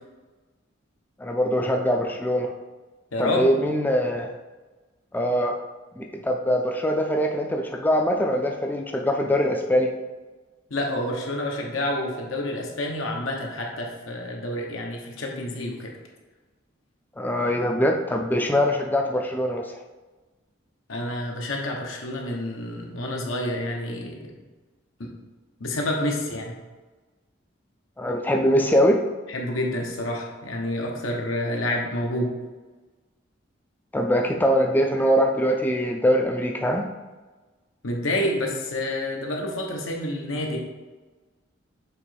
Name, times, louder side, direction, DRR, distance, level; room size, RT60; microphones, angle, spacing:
voice 1, 1.2-2.5 3.2-4.3 5.1-5.5 6.0-9.9 17.2-19.6 28.0-29.0 33.9-36.8, equal, 10° left, 2 dB, 0.3 m, -22 dB
voice 2, 3.1-3.5 10.7-15.9 20.9-24.2 25.0-25.1 25.6-26.5 29.3-32.3 37.8-40.6, left 1 dB, 90° left, 0 dB, 1.2 m, -28 dB
7.0 x 3.0 x 4.5 m, 1.2 s
head